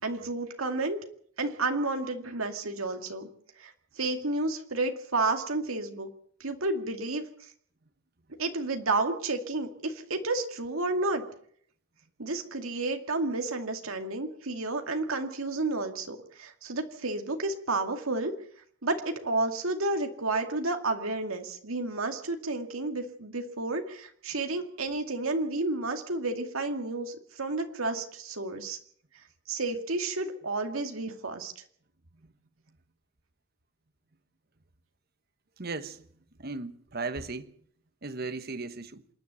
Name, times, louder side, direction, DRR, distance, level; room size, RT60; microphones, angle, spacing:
voice 1, 0.0-1.0 1.4-3.3 3.6-6.1 6.4-7.2 8.4-11.2 12.2-18.3 18.8-28.8 29.5-31.5, right 2 dB, 90° right, 2.3 m, -31 dB
voice 2, 35.6-36.0 36.4-37.5 38.0-39.0, right 3 dB, 50° right, 1.3 m, -36 dB
27.0 x 10.5 x 9.3 m
head